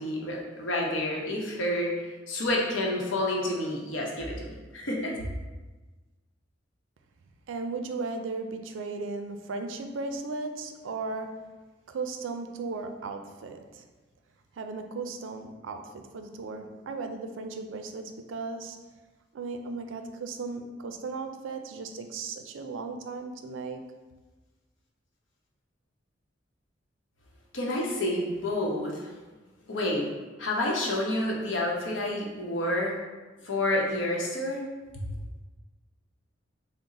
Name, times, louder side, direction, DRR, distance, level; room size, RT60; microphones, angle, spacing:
voice 1, 0.0-1.9 2.3-5.1 27.5-29.1 29.7-30.1 30.4-33.0 33.4-34.6 34.9-35.0, left 1 dB, 80° left, -2 dB, 0.8 m, -29 dB
voice 2, 7.5-11.4 11.9-13.8 14.6-18.8 19.3-23.8, right 3 dB, 85° right, 6 dB, 0.4 m, -36 dB
3.8 x 2.0 x 4.0 m, 1.2 s
head